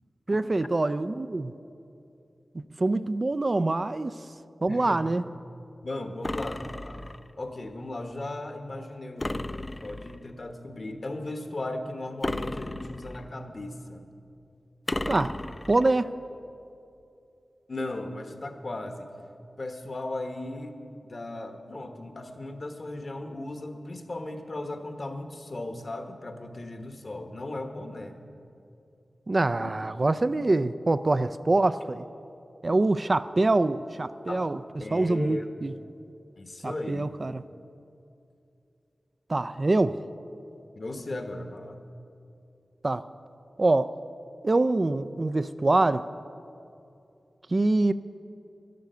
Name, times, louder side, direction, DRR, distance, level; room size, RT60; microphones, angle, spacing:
voice 1, 0.3-1.5 2.8-4.2 4.6-5.2 15.1-15.4 15.7-16.1 29.3-32.0 32.6-34.6 34.9-35.7 36.6-37.4 39.3-40.0 42.8-43.0 43.6-44.0 44.4-46.1 47.5-47.9, right 2 dB, 40° right, 13 dB, 0.4 m, -25 dB
voice 2, 4.7-5.2 5.8-7.0 7.4-9.4 9.8-14.0 17.7-19.1 19.6-20.8 21.1-28.2 29.6-29.7 34.3-34.5 34.8-35.5 36.4-37.1 40.8-41.8, left 2 dB, 50° left, 6 dB, 1.2 m, -37 dB
sound 1, 6.2-7.3 9.2-10.3 12.2-13.4 14.9-15.9, left 1 dB, 25° left, 0.4 m, -34 dB
12.0 x 11.5 x 6.7 m, 2.6 s
wide cardioid pair, 60°, 0 cm